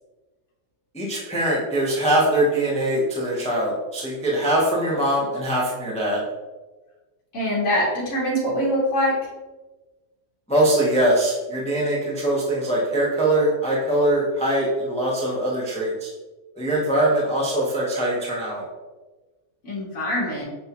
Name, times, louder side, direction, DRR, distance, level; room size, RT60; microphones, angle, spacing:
voice 1, 0.9-6.2 10.5-16.1 16.6-18.6, right 1 dB, 5° left, -5 dB, 0.6 m, -22 dB
voice 2, 7.3-9.3 19.6-20.4, equal, 65° left, -7 dB, 1.4 m, -23 dB
6.2 x 2.4 x 2.8 m, 1.2 s
omnidirectional pair, 1.6 m